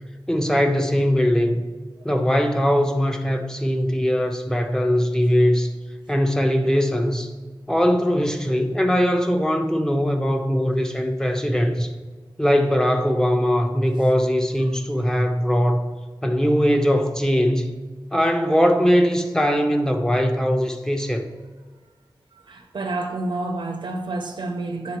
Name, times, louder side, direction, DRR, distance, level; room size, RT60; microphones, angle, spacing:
voice 1, 0.3-1.6 2.0-5.7 6.1-7.3 7.7-11.9 12.4-15.8 16.2-17.7 18.1-21.3, equal, 5° left, 0.6 m, -20 dB
voice 2, 22.3-25.0, right 2 dB, 65° right, 0.6 m, -29 dB
9.2 x 3.8 x 3.0 m
wide cardioid pair, 95°, 9 cm